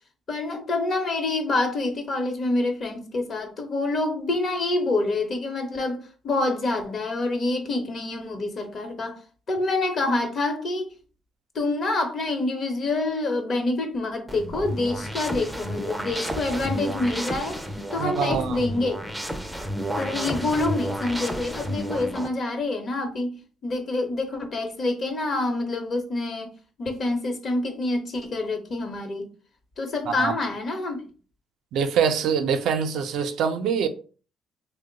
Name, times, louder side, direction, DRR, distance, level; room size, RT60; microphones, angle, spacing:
voice 1, 0.3-9.2 9.5-10.9 11.5-19.0 20.0-23.4 23.6-26.5 26.8-29.3 29.8-31.0, left 2 dB, 50° left, 0.9 m, -27 dB
sound 1, 14.3-22.3, equal, 5° right, 0.5 m, -31 dB
voice 2, 18.0-18.6 30.1-30.3 31.7-33.9, right 7 dB, 75° right, 0.4 m, -24 dB
3.0 x 2.1 x 3.9 m
cardioid pair, 95°, 0 cm